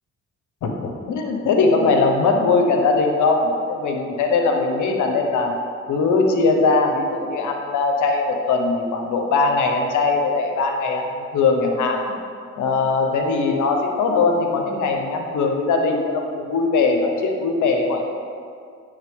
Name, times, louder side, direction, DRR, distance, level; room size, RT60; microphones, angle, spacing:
voice 1, 0.6-5.5 5.9-12.0 12.6-18.0, left 3 dB, 70° left, 3 dB, 0.8 m, -20 dB
8.9 x 3.4 x 3.5 m, 2.3 s
supercardioid pair, 45°, 31 cm